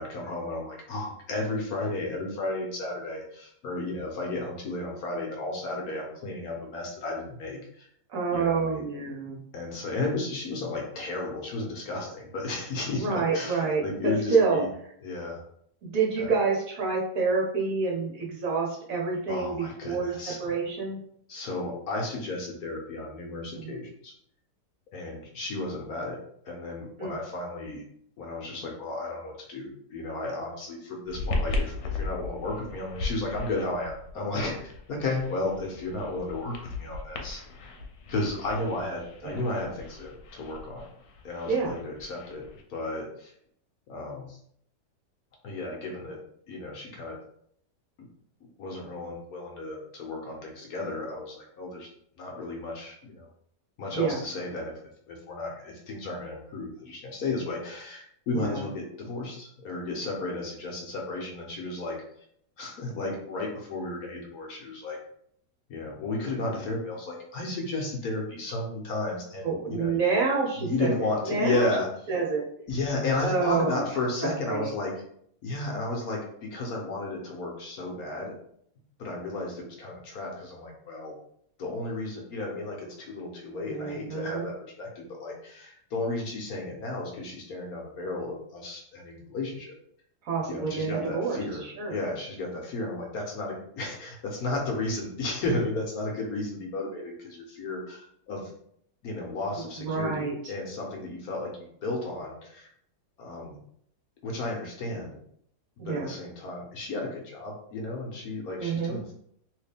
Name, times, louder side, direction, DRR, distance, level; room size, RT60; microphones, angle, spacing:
voice 1, 0.0-7.9 8.3-8.8 9.5-14.7 15.0-15.4 16.2-16.3 19.3-20.4 21.3-24.1 24.9-26.2 26.5-27.8 28.2-37.4 38.1-40.9 41.2-42.4 42.7-43.3 43.9-44.4 45.4-46.2 46.5-47.2 48.6-51.9 52.2-53.3 53.8-54.7 55.1-62.0 62.6-65.0 65.7-70.0 70.6-71.9 72.7-74.9 75.4-78.3 79.0-81.1 81.6-89.8 90.5-91.6 91.9-98.5 99.0-102.7 103.2-103.6 104.2-105.2 105.8-109.1, left 2 dB, 65° left, -1 dB, 1.2 m, -33 dB
voice 2, 8.1-9.4 12.9-14.6 15.8-21.0 23.6-23.8 27.0-27.2 39.2-39.5 41.5-41.8 53.9-54.2 58.3-58.7 69.4-70.9 71.3-71.7 72.1-72.4 73.2-73.8 74.2-74.7 83.7-84.5 90.2-91.9 99.6-100.3 105.8-106.1 108.6-109.0, right 4 dB, 60° right, -2 dB, 1.0 m, -28 dB
sound 1, 31.1-42.6, left 3 dB, 85° left, 1.3 m, -37 dB
3.1 x 2.9 x 3.3 m, 0.67 s
omnidirectional pair, 1.9 m